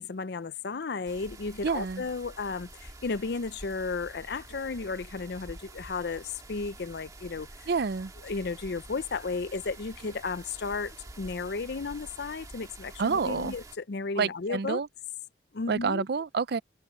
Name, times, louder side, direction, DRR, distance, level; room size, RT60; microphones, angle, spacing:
voice 1, 0.0-7.5 8.2-14.8 15.5-16.0, left 4 dB, 55° left, 0.5 m, -34 dB
sound 1, 1.1-13.8, right 2 dB, 20° right, 1.9 m, -48 dB
voice 2, 1.6-2.0 7.7-8.1 13.0-13.5 14.2-14.9 15.7-16.6, right 5 dB, 55° right, 0.5 m, -28 dB
head